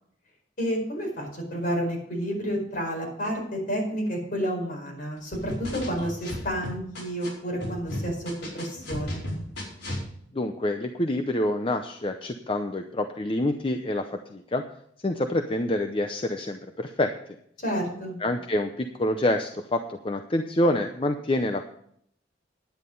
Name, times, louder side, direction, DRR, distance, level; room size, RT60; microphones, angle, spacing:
voice 1, 0.6-9.2 17.6-18.1, equal, 50° left, 0 dB, 4.9 m, -30 dB
sound 1, 5.3-7.3 7.6-10.0, left 1 dB, 75° left, 4.8 m, -34 dB
voice 2, 10.3-14.6 15.0-17.1 18.2-21.7, left 1 dB, 30° left, 6 dB, 0.6 m, -27 dB
10.5 x 9.7 x 5.3 m, 0.68 s
head